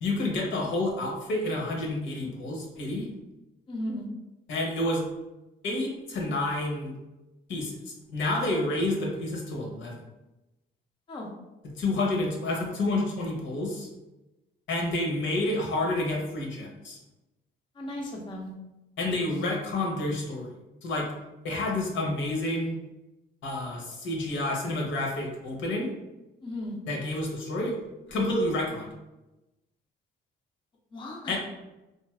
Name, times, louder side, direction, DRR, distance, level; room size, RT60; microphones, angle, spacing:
voice 1, 0.0-3.1 4.5-5.0 5.6-6.9 7.5-10.0 11.6-13.9 14.7-17.0 19.0-20.5 20.8-21.1 21.4-22.7 23.4-25.9 26.9-27.8 28.1-28.9 31.3-31.4, left 2 dB, 70° left, -1 dB, 0.8 m, -29 dB
voice 2, 3.7-4.1 11.1-11.3 17.8-18.5 26.4-26.8 30.9-31.4, left 1 dB, 25° left, -1 dB, 0.5 m, -36 dB
3.1 x 2.5 x 2.3 m, 1.0 s
cardioid pair, 90°, 20 cm